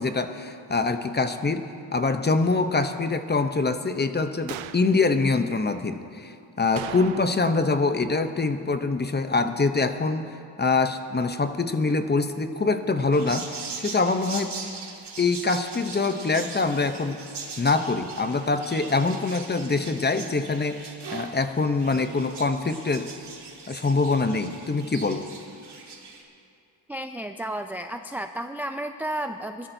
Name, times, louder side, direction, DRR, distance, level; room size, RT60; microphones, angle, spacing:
voice 1, 0.0-1.6 1.9-10.3 10.6-13.5 13.8-14.6 15.2-17.2 17.6-23.1 23.7-25.3, left 3 dB, 20° left, 8 dB, 0.7 m, -24 dB
sound 1, 4.5-4.9 6.8-7.6 7.9-8.0 13.0-13.1, right 11 dB, 90° right, 0.6 m, -38 dB
sound 2, 13.1-26.2, right 4 dB, 60° right, 2.1 m, -40 dB
voice 2, 26.9-29.7, right 1 dB, 5° right, 6 dB, 0.3 m, -32 dB
21.5 x 13.0 x 2.7 m, 2.5 s
cardioid pair, 85°, 46 cm